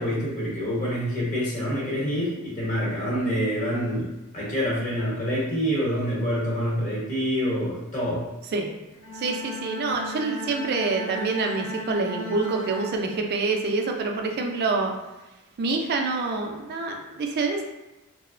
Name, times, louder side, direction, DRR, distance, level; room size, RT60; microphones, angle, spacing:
voice 1, 0.0-8.2, equal, 35° left, -6 dB, 0.9 m, -26 dB
Bowed string instrument, 8.9-13.6, equal, 60° left, 0.4 m, -36 dB
voice 2, 9.1-14.9 15.6-17.6, right 3 dB, 45° right, 3 dB, 0.3 m, -26 dB
2.8 x 2.0 x 2.4 m, 1.0 s
head